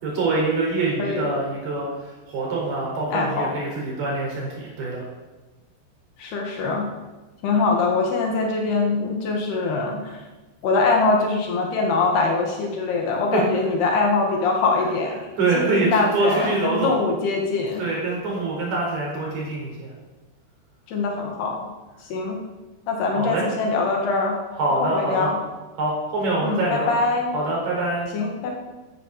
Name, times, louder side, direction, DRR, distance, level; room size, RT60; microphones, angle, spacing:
voice 1, 0.0-5.0 13.3-13.4 15.4-17.0 17.8-19.9 23.1-23.4 24.5-25.3 25.8-26.9 27.3-28.1, right 2 dB, 60° right, -2 dB, 6.5 m, -25 dB
voice 2, 3.1-3.5 6.2-6.9 7.4-10.2 10.6-15.2 15.6-17.8 20.9-21.6 22.0-22.4 22.9-24.4 24.8-25.4 26.4-27.3 28.1-28.6, left 3 dB, 65° left, 1 dB, 3.8 m, -23 dB
14.0 x 11.5 x 6.8 m, 1.2 s
omnidirectional pair, 5.2 m